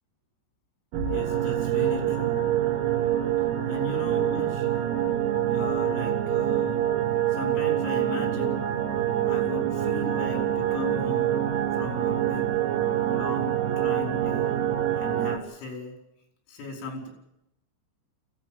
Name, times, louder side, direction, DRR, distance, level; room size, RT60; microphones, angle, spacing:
sound 1, 0.9-15.4, right 11 dB, 90° right, 4.3 m, -26 dB
voice 1, 1.1-2.4 3.7-4.7 5.5-6.8 7.3-8.7 9.2-11.5 11.7-12.5 13.1-14.6 14.9-16.0 16.5-17.1, left 2 dB, 80° left, 3 dB, 7.6 m, -37 dB
24.5 x 15.5 x 9.2 m, 0.82 s
omnidirectional pair, 6.0 m